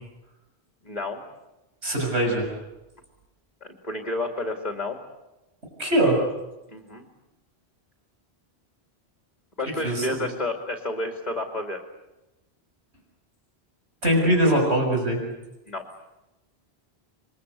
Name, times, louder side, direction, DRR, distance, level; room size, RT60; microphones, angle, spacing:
voice 1, 0.8-1.2 3.6-5.0 6.7-7.1 9.6-11.8 14.4-14.6 15.7-15.9, left 2 dB, 40° left, 4 dB, 2.6 m, -30 dB
voice 2, 1.8-2.5 5.8-6.2 9.8-10.1 14.0-15.2, right 1 dB, 80° right, 1 dB, 6.7 m, -21 dB
28.0 x 22.5 x 8.3 m, 0.99 s
omnidirectional pair, 1.1 m